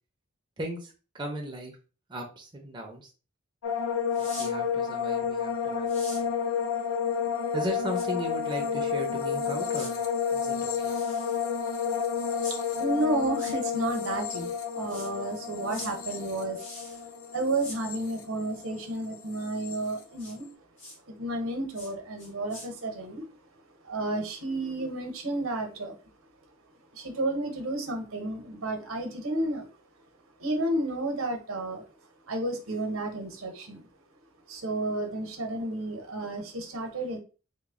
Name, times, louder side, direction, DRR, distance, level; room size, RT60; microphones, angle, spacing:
voice 1, 0.6-1.7 2.1-3.1 4.4-6.3 7.5-10.0 10.3-10.9, equal, 20° right, 1 dB, 0.5 m, -37 dB
sound 1, 3.6-18.9 19.1-19.8, left 6 dB, 80° left, 0.6 m, -31 dB
sound 2, 4.1-4.5 5.9-6.2 7.9-8.1 9.7-9.9 10.8-11.5 12.4-12.6 13.3-13.5 14.9-15.1 15.7-15.9 16.5-17.0 17.6-17.8 20.2-20.3 20.8-21.0 21.7-21.9 22.2-22.7, left 1 dB, 35° left, 1.1 m, -43 dB
voice 2, 12.5-16.6 17.3-20.5 21.1-23.2 23.8-26.0 26.9-29.7 30.4-31.9 32.2-33.9 34.5-37.2, right 2 dB, 80° right, 4 dB, 0.8 m, -31 dB
3.0 x 2.1 x 3.6 m, 0.35 s
head